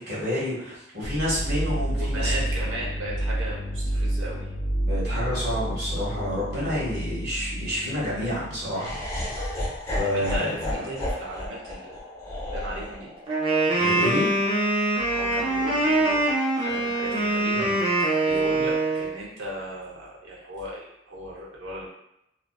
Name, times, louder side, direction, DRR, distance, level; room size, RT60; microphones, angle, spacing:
voice 1, 0.1-2.3 4.8-9.0 9.3-10.8 13.8-14.3 17.5-17.7, left 1 dB, 60° right, -8 dB, 1.1 m, -29 dB
sound 1, 1.0-8.7, right 1 dB, 55° left, 0.6 m, -29 dB
voice 2, 2.0-4.5 10.0-12.0 12.5-13.1 15.0-17.7 18.2-21.9, right 1 dB, 90° right, -4 dB, 0.7 m, -36 dB
Laughter, 8.7-14.9, left 1 dB, 15° left, 0.7 m, -33 dB
Wind instrument woodwind instrument, 13.3-19.1, right 2 dB, 30° right, 0.5 m, -23 dB
2.4 x 2.3 x 2.2 m, 0.81 s
head